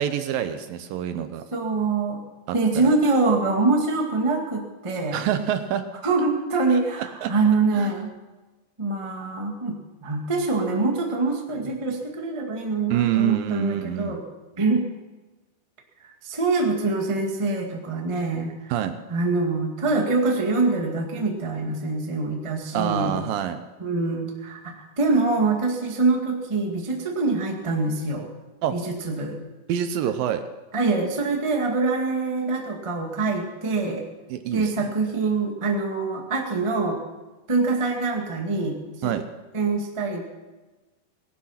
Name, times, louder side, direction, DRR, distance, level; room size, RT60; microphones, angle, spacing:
voice 1, 0.0-1.4 2.5-2.9 5.1-5.9 6.7-6.8 7.2-7.3 7.7-7.9 12.9-14.2 18.7-19.0 22.7-23.6 28.6-28.8 29.7-30.4 34.3-34.7 39.0-39.3, right 10 dB, 75° right, 9 dB, 2.4 m, -26 dB
voice 2, 1.5-2.2 2.5-5.3 6.0-8.1 8.8-14.2 14.6-14.9 16.0-18.7 19.1-23.2 23.8-28.3 28.7-29.4 30.7-34.1 34.5-37.0 37.5-39.1 39.5-40.2, right 3 dB, 15° right, 1 dB, 1.0 m, -24 dB
19.0 x 11.5 x 5.8 m, 1.2 s
omnidirectional pair, 4.3 m